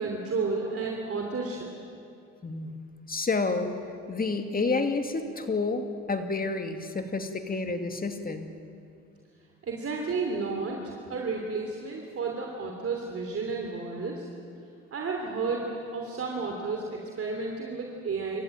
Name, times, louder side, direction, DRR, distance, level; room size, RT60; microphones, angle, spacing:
voice 1, 0.0-1.7 9.6-14.3 14.9-15.7 15.9-18.4, right 4 dB, 50° right, 1 dB, 3.1 m, -32 dB
voice 2, 2.4-2.7 3.1-3.7 4.1-8.5, left 3 dB, 30° left, 6 dB, 2.5 m, -29 dB
26.0 x 15.0 x 9.1 m, 2.5 s
supercardioid pair, 70°, 30 cm